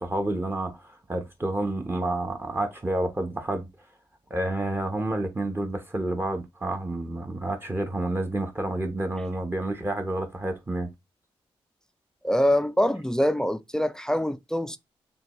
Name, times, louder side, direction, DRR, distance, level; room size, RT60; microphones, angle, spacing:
voice 1, 0.0-3.7 4.3-10.9, right 1 dB, 20° right, 0.9 m, -29 dB
voice 2, 12.2-14.8, equal, 5° left, 0.4 m, -24 dB
6.6 x 2.2 x 3.0 m
cardioid pair, 65°, 10 cm